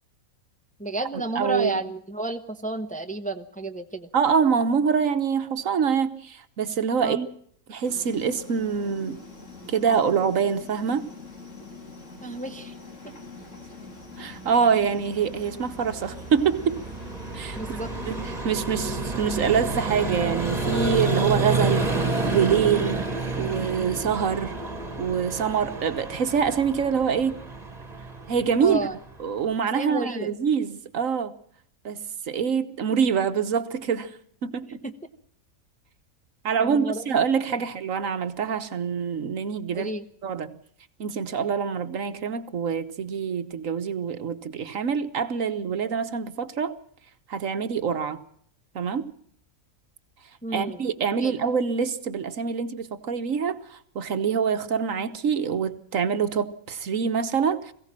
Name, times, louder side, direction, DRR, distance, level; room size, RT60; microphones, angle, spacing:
voice 1, 0.8-4.1 7.0-7.2 12.2-12.7 13.0-13.1 17.5-17.9 28.6-28.9 29.7-30.3 34.8-34.9 36.6-37.0 39.7-40.0 50.4-50.9 51.2-51.3, right 2 dB, 5° left, 0.9 m, -31 dB
voice 2, 1.3-1.7 4.1-7.3 7.7-9.2 9.7-11.1 14.2-16.8 17.3-17.6 18.1-21.9 22.3-23.1 23.4-24.5 25.0-27.4 28.3-28.9 29.2-31.3 31.8-34.8 36.4-39.9 40.2-40.5 41.0-46.8 47.3-48.2 48.7-49.1 50.5-57.7, right 6 dB, 65° right, 1.4 m, -25 dB
sound 1, 7.8-18.4, left 3 dB, 55° left, 3.1 m, -43 dB
Vehicle, 14.8-29.5, right 3 dB, 25° right, 2.0 m, -30 dB
21.5 x 16.0 x 7.4 m
omnidirectional pair, 1.5 m